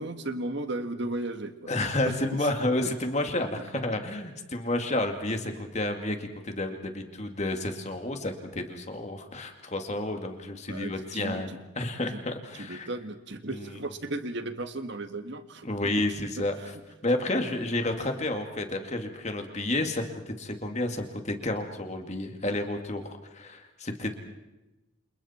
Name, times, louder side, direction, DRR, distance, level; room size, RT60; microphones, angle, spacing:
voice 1, 0.0-1.7 10.7-11.4 12.1-12.2 12.6-15.7, right 2 dB, 55° right, 8 dB, 1.6 m, -35 dB
voice 2, 1.7-11.5 11.8-12.9 13.5-13.8 15.6-16.6 17.0-24.1, left 1 dB, 30° left, 5 dB, 2.3 m, -30 dB
29.0 x 28.0 x 4.4 m, 1.0 s
head